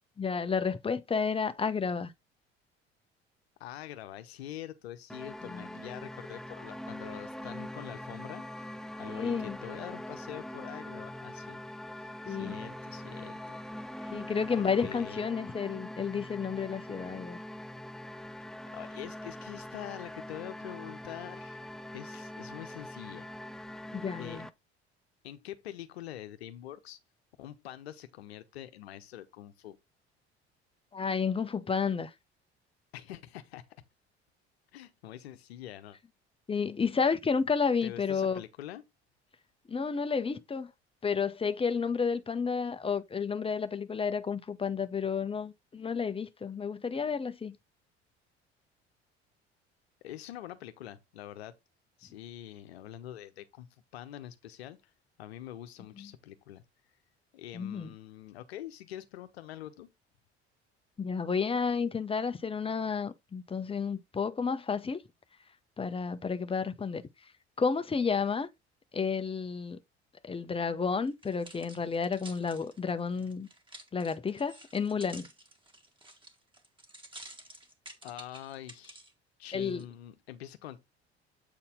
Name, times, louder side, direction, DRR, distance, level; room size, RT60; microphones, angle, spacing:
voice 1, 0.2-2.1 5.5-5.6 9.1-9.6 12.3-12.5 14.1-17.4 23.9-24.5 30.9-32.1 36.5-38.4 39.7-40.7 41.0-47.6 56.0-56.1 57.5-57.9 61.0-65.0 65.8-67.0 67.6-68.5 68.9-69.8 70.2-73.5 73.9-75.2 79.5-79.8, left 5 dB, 15° left, 0.9 m, -31 dB
voice 2, 3.6-8.4 9.0-11.6 12.3-13.6 14.5-15.3 18.7-21.6 21.9-23.3 24.2-24.4 25.2-27.0 27.4-29.8 32.9-33.6 34.7-36.0 37.8-38.8 50.0-51.5 52.0-53.7 53.9-54.8 55.2-56.6 57.3-59.9 78.0-79.0 79.4-80.8, left 12 dB, 70° left, 1.0 m, -45 dB
sound 1, 5.1-24.5, left 1 dB, ahead, 0.4 m, -43 dB
sound 2, 71.1-79.1 79.7-79.8, right 1 dB, 15° right, 1.9 m, -51 dB
8.1 x 4.2 x 3.7 m
figure-of-eight pair, 55°, 32 cm